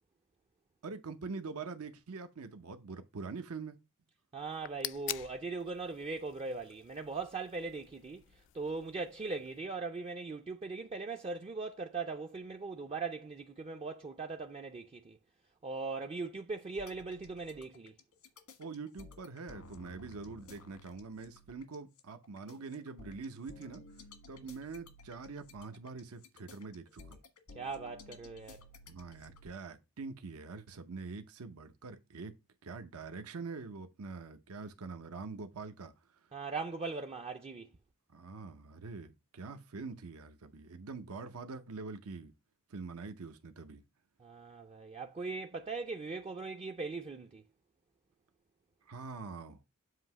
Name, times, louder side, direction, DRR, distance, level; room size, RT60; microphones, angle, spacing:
voice 1, 0.8-3.8 18.6-23.8 24.3-27.2 28.9-32.4 32.6-36.3 38.1-42.3 42.7-43.8 48.8-49.6, right 4 dB, 80° right, 0.7 m, -44 dB
voice 2, 4.3-15.2 15.6-17.9 24.3-24.4 27.5-28.6 36.3-37.7 44.2-47.4, right 4 dB, 25° right, 0.4 m, -40 dB
sound 1, 4.4-9.6, left 15 dB, 60° left, 0.3 m, -46 dB
sound 2, 16.8-29.5, left 2 dB, 90° left, 1.4 m, -54 dB
7.6 x 2.8 x 5.9 m
head